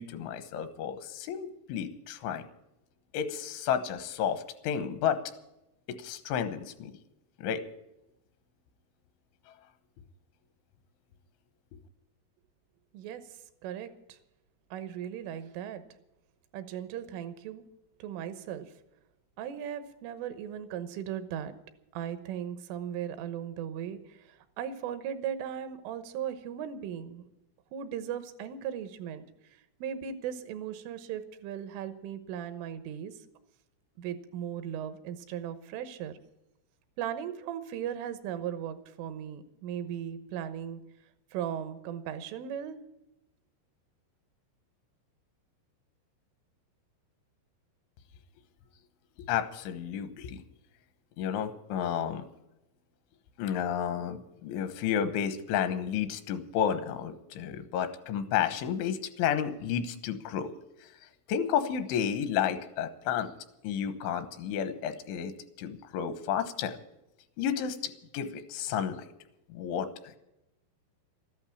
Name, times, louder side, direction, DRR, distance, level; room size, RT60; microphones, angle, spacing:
voice 1, 0.0-2.4 3.1-5.2 5.9-6.9 7.4-7.6 49.3-50.4 51.2-52.3 53.4-60.5 60.8-60.9 61.3-63.3 63.6-65.3 65.6-66.8 67.4-69.1 69.5-70.2, left 8 dB, 80° left, 10 dB, 3.4 m, -31 dB
voice 2, 12.9-14.2 14.7-15.8 16.5-17.6 18.0-18.7 19.4-21.6 21.9-27.2 27.7-29.2 29.5-33.3 34.0-36.2 37.0-40.8 41.3-42.8, right 9 dB, 85° right, 11 dB, 3.6 m, -37 dB
13.5 x 11.5 x 8.5 m, 0.89 s
omnidirectional pair, 5.5 m